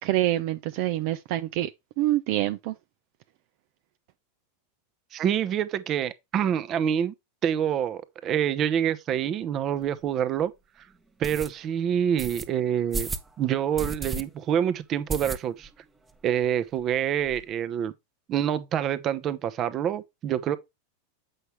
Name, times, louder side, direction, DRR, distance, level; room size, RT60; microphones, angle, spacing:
voice 1, 0.0-1.7 2.0-2.7, right 15 dB, 55° right, 0.6 m, -26 dB
voice 2, 5.1-7.1 7.4-10.5 11.2-13.1 13.4-15.7 16.2-17.9 18.3-20.6, right 9 dB, 35° right, 1.0 m, -26 dB
sound 1, 9.8-9.9 10.4-10.5 11.2-11.5 12.2-12.5 12.9-13.3 13.8-14.2 14.5-14.6 15.1-15.7 16.1-16.2 16.4-16.5 16.8-17.4, right 3 dB, 15° right, 1.1 m, -33 dB
7.9 x 5.8 x 3.1 m
hypercardioid pair, 105°, 0 cm